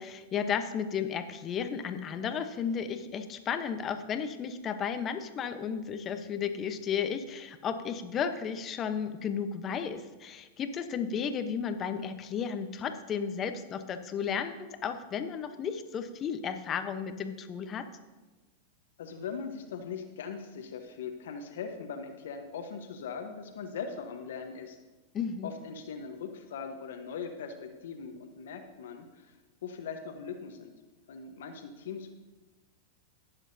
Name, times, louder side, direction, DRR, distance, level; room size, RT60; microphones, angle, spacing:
voice 1, 0.0-17.9 25.1-25.5, left 7 dB, 30° left, 8 dB, 0.9 m, -33 dB
voice 2, 19.0-24.8 25.4-29.3 29.6-30.7 31.1-32.1, left 6 dB, 75° left, 5 dB, 1.1 m, -40 dB
18.5 x 7.2 x 2.8 m, 1.2 s
hypercardioid pair, 115°, 0 cm